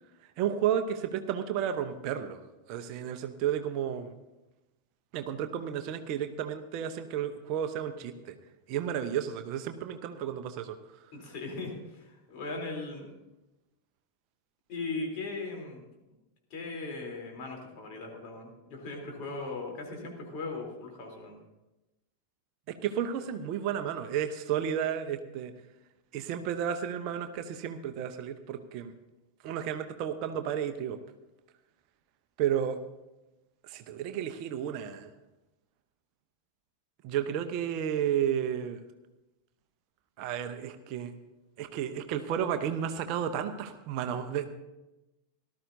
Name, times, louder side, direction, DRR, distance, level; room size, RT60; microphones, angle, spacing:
voice 1, 0.4-2.4 2.7-4.1 5.1-8.3 8.7-10.8 22.8-25.5 26.1-28.9 29.4-31.0 32.4-32.8 33.7-35.1 37.0-38.8 40.2-41.1 41.6-44.5, right 9 dB, 40° right, 7 dB, 0.8 m, -32 dB
voice 2, 11.1-13.1 14.7-15.8 16.5-21.4, left 3 dB, 45° left, 0 dB, 3.4 m, -38 dB
18.0 x 12.5 x 2.7 m, 1.0 s
figure-of-eight pair, 90°, 0 cm